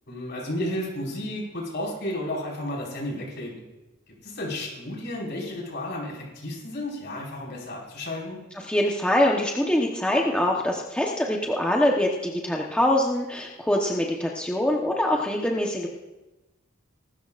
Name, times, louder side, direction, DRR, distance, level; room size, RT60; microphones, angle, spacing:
voice 1, 0.1-3.6 4.2-8.4, left 1 dB, 55° left, -3 dB, 5.1 m, -32 dB
voice 2, 8.7-15.9, left 1 dB, 5° left, -1 dB, 1.0 m, -24 dB
23.5 x 13.0 x 2.5 m, 1.1 s
head